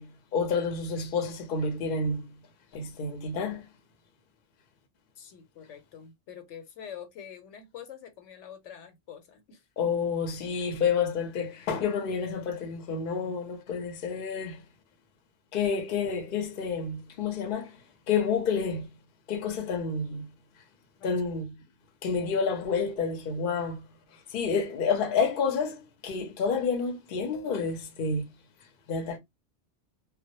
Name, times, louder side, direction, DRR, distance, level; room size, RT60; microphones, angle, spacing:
voice 1, 0.0-2.3 2.7-3.7 9.8-14.6 15.5-17.7 18.1-18.9 19.3-20.3 21.0-21.6 22.0-23.8 24.3-28.3 28.9-29.2, left 5 dB, 55° left, 0.7 m, -29 dB
voice 2, 5.2-9.6 21.0-21.1, left 8 dB, 90° left, 1.0 m, -46 dB
2.2 x 2.0 x 2.8 m
omnidirectional pair, 1.2 m